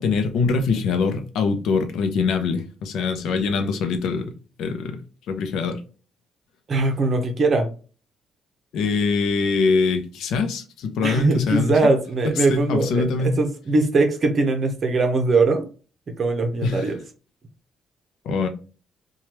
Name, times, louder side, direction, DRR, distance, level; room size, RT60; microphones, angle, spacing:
voice 1, 0.0-4.3 4.6-5.0 5.3-5.8 8.7-11.9 12.4-13.4 16.6-16.9 18.2-18.5, left 4 dB, 80° left, 0.5 m, -23 dB
voice 2, 6.7-7.7 11.0-15.6 16.1-17.0, right 3 dB, 45° right, 0.7 m, -21 dB
3.1 x 2.3 x 2.8 m
cardioid pair, 90°, 0 cm